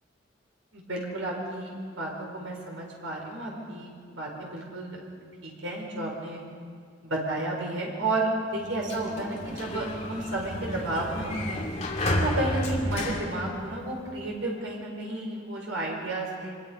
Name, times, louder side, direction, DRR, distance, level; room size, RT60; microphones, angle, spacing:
voice 1, 0.7-5.0 5.4-6.4 7.0-11.7 12.2-16.5, right 2 dB, 80° right, -1 dB, 4.7 m, -32 dB
Sliding door, 8.6-14.2, left 1 dB, 35° left, 2.4 m, -32 dB
24.5 x 20.5 x 5.2 m, 2.1 s
head